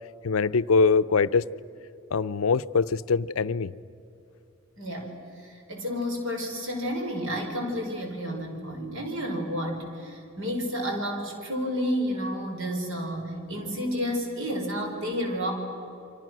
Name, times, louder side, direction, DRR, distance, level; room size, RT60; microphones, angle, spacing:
voice 1, 0.2-1.4 2.1-3.7, left 4 dB, 85° left, 0.6 m, -23 dB
voice 2, 4.8-5.1 5.4-15.5, equal, 70° right, 4.8 m, -31 dB
29.0 x 25.0 x 6.2 m
head